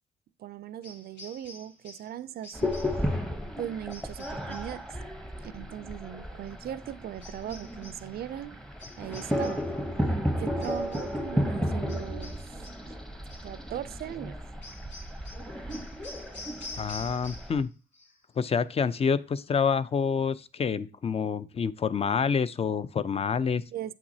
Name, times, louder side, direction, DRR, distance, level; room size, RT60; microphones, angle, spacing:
voice 1, 0.4-2.7 3.6-4.9 5.4-8.6 9.0-9.7 10.3-12.9 13.4-14.4 23.7-23.9, right 11 dB, 50° right, 0.4 m, -39 dB
sound 1, 0.8-2.2 2.4-3.1 3.9-4.8 7.2-8.1 8.8-9.7 10.6-11.2 11.9-12.9 13.3-13.6 14.6-17.7 17.9-18.4, left 2 dB, 65° left, 2.4 m, -47 dB
sound 2, 2.5-17.6, equal, 5° left, 0.8 m, -33 dB
voice 2, 16.8-17.7 18.4-23.6, left 6 dB, 30° left, 0.4 m, -27 dB
7.8 x 5.8 x 2.7 m
cardioid pair, 90°, 20 cm